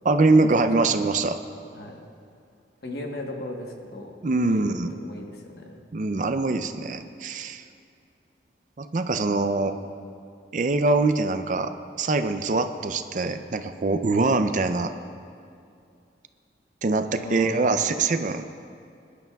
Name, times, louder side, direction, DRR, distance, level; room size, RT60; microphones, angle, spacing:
voice 1, 0.0-1.4 4.2-4.9 5.9-7.6 8.8-9.7 10.5-11.7 12.0-14.9 16.8-18.5, right 3 dB, 45° right, 9 dB, 0.4 m, -23 dB
voice 2, 2.8-4.2 4.4-4.8 5.0-5.8 17.2-18.0, left 1 dB, 60° left, 1 dB, 1.2 m, -36 dB
19.5 x 11.5 x 2.3 m, 2.4 s
head